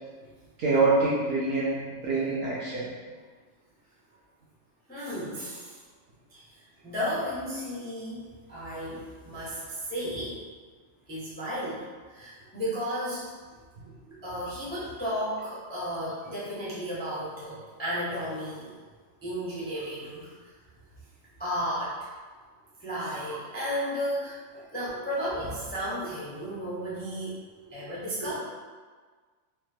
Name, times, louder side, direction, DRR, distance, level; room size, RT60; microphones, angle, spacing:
voice 1, 0.6-2.9 28.2-28.3, right 3 dB, 60° right, -7 dB, 0.7 m, -25 dB
voice 2, 4.9-5.8 6.3-6.4 6.8-10.4 11.1-13.3 14.2-18.8 19.2-20.3 21.4-22.0 22.8-27.4 27.7-28.4, equal, 15° left, -9 dB, 0.3 m, -33 dB
3.0 x 2.1 x 3.2 m, 1.5 s
omnidirectional pair, 1.5 m